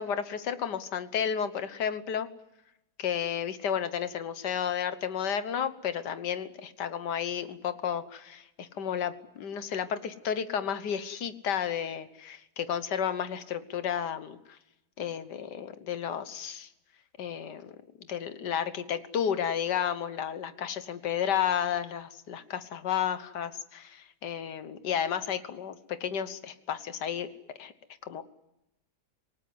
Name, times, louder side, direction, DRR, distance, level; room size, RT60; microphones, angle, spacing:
voice 1, 0.0-2.3 3.0-14.4 15.0-16.7 17.2-17.8 18.1-27.3 27.6-27.7 28.0-28.2, left 8 dB, 80° left, 11 dB, 1.8 m, -32 dB
27.0 x 19.0 x 9.6 m, 0.90 s
omnidirectional pair, 1.8 m